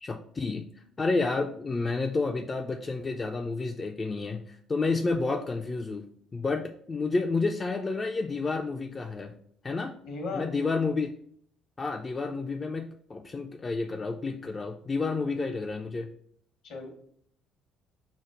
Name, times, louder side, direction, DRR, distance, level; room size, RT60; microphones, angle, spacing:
voice 1, 0.0-0.7 1.0-6.0 6.3-9.4 9.6-10.0 10.3-11.1 11.8-16.1, left 3 dB, 30° left, 3 dB, 0.3 m, -30 dB
voice 2, 10.0-10.5 16.6-16.9, left 3 dB, 65° left, 3 dB, 0.9 m, -35 dB
5.0 x 2.1 x 4.6 m, 0.63 s
figure-of-eight pair, 50°, 0 cm